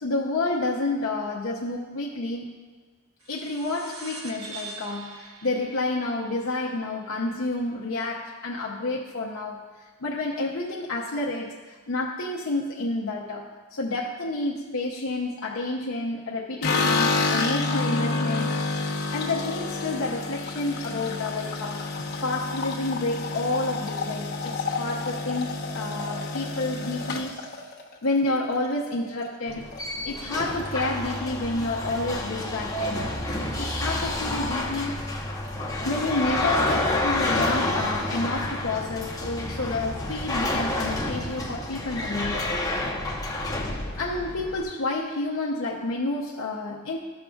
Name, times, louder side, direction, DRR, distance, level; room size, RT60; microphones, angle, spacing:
voice 1, 0.0-2.5 3.3-18.5 19.1-27.4 28.0-29.7 30.0-33.1 33.6-35.0 35.8-42.5 43.7-47.0, left 2 dB, 70° left, -2 dB, 0.7 m, -29 dB
sound 1, 3.2-8.1, right 3 dB, 80° right, 1.2 m, -44 dB
sound 2, 16.6-28.9 29.2-29.8 30.1-30.2 30.5-31.2, left 3 dB, 50° left, 1.0 m, -29 dB
sound 3, 29.5-44.6, left 2 dB, 15° left, 0.8 m, -29 dB
13.5 x 6.5 x 2.4 m, 1.4 s
head